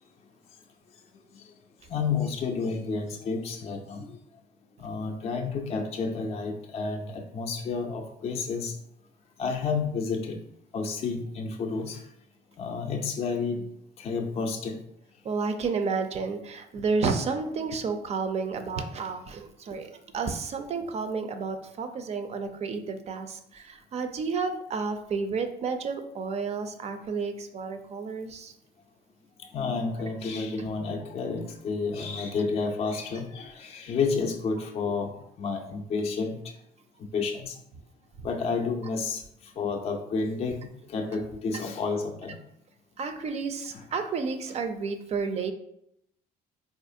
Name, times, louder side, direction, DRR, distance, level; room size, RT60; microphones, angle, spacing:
voice 1, 1.9-4.1 4.8-8.7 9.4-10.4 10.7-12.0 12.6-13.7 14.0-14.8 16.9-17.0 29.5-35.1 35.4-36.4 37.1-37.5 38.2-39.2 39.6-42.4, left 4 dB, 40° left, 3 dB, 0.4 m, -30 dB
voice 2, 15.2-28.5 43.0-45.5, right 4 dB, 40° right, 7 dB, 0.4 m, -31 dB
4.2 x 2.4 x 2.6 m, 0.77 s
cardioid pair, 110°, 17 cm